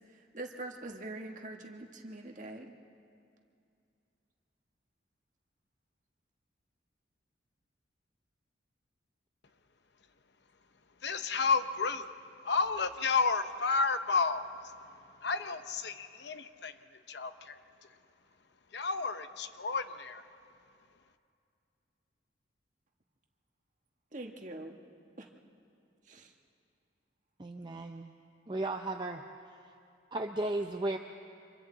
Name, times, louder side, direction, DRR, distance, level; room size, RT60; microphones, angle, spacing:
voice 1, 0.1-2.7 24.1-24.8 25.2-25.3 26.0-26.3, right 2 dB, 40° right, 2 dB, 1.6 m, -44 dB
voice 2, 11.0-12.1 12.4-14.5 15.2-16.8 17.1-17.6 18.7-20.2, left 4 dB, 60° left, 10 dB, 0.8 m, -31 dB
voice 3, 27.4-28.1 28.5-29.2 30.1-31.0, right 2 dB, 25° right, 4 dB, 0.6 m, -35 dB
30.0 x 26.0 x 4.0 m, 2.5 s
head